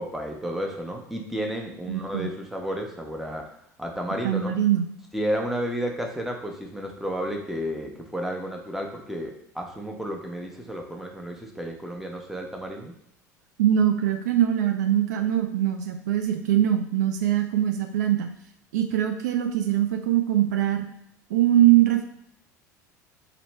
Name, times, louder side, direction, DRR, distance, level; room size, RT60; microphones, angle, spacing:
voice 1, 0.0-3.5 3.8-4.5 5.1-12.9, equal, ahead, 1 dB, 0.8 m, -32 dB
voice 2, 1.9-2.3 4.2-4.8 13.6-18.3 18.7-20.9 21.3-22.0, right 11 dB, 70° right, 6 dB, 0.4 m, -22 dB
3.9 x 3.1 x 3.2 m, 0.75 s
figure-of-eight pair, 65°, 9 cm